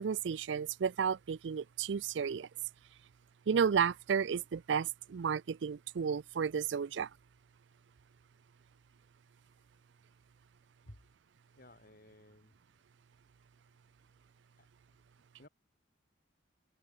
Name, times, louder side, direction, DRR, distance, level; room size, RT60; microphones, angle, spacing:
voice 1, 0.0-2.5 3.5-7.1, right 6 dB, 75° right, 0.4 m, -32 dB
voice 2, 11.5-12.5 14.6-14.7 15.4-15.5, left 1 dB, 50° left, 5.0 m, -56 dB
head